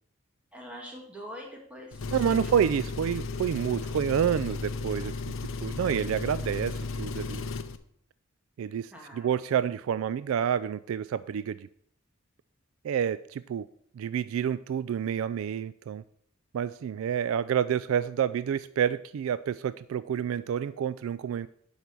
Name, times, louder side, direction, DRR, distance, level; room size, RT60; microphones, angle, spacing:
voice 1, 0.5-2.5 8.9-9.3, equal, 5° right, -1 dB, 1.9 m, -44 dB
Engine, 1.9-7.8, left 3 dB, 70° left, 0.6 m, -34 dB
voice 2, 2.1-5.1 5.6-7.5 8.6-11.7 12.8-13.7 14.0-16.0 16.5-21.5, right 8 dB, 75° right, 15 dB, 0.3 m, -28 dB
8.1 x 5.5 x 6.1 m, 0.66 s
head